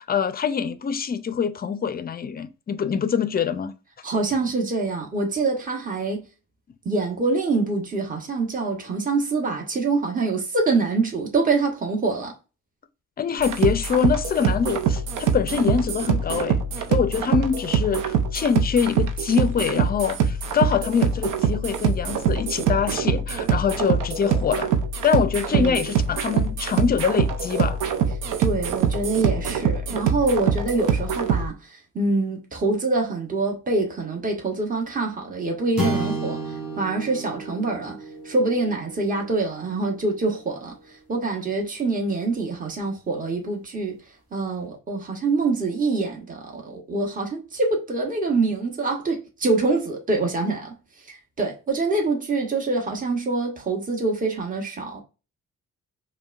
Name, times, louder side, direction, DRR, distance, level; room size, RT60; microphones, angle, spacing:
voice 1, 0.0-3.7 13.2-16.6 16.9-24.7 25.0-28.1, left 7 dB, 30° left, 0.4 m, -24 dB
voice 2, 4.0-6.2 6.8-12.4 25.5-25.8 28.4-38.0 38.2-44.0 44.3-50.8 51.1-55.0, right 3 dB, 25° right, 1.0 m, -25 dB
sound 1, 13.4-31.5, right 6 dB, 90° right, 0.6 m, -24 dB
sound 2, 35.8-40.2, right 2 dB, 5° right, 1.5 m, -31 dB
5.1 x 2.2 x 2.4 m
cardioid pair, 90°, 30 cm